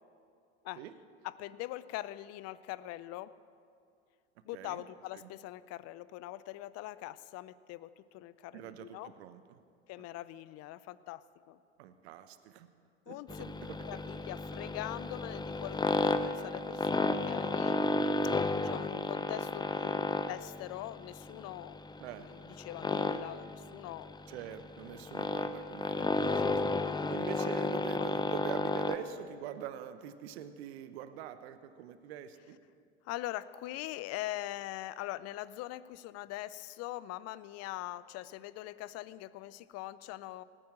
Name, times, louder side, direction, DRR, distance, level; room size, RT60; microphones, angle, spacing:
voice 1, 1.2-3.3 4.4-9.1 9.9-11.6 13.1-13.4 13.8-17.8 18.2-18.3 18.6-21.8 22.2-24.2 27.3-27.5 28.7-28.8 33.0-40.4, left 15 dB, 50° left, 17 dB, 0.6 m, -42 dB
voice 2, 4.5-4.8 5.1-5.2 8.5-9.6 11.8-12.7 13.1-14.0 22.0-22.3 24.3-26.6 27.1-32.6, right 10 dB, 70° right, 11 dB, 1.0 m, -44 dB
sound 1, 13.3-29.0, left 3 dB, 15° left, 0.7 m, -33 dB
18.5 x 8.9 x 7.6 m, 2.4 s
hypercardioid pair, 75°, 33 cm